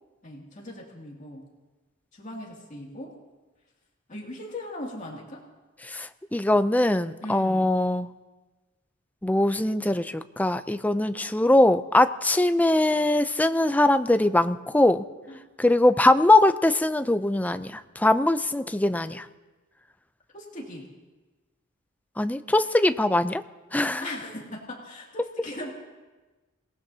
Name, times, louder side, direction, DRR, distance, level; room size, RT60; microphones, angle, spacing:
voice 1, 0.2-1.4 2.1-3.1 4.1-5.4 7.2-7.7 15.3-15.4 20.3-20.9 24.0-25.7, left 1 dB, 35° left, -2 dB, 2.5 m, -39 dB
voice 2, 5.8-8.1 9.2-15.0 15.6-19.3 22.2-23.4 23.7-24.1, left 1 dB, 10° left, 10 dB, 0.5 m, -22 dB
27.0 x 18.5 x 2.8 m, 1.2 s
head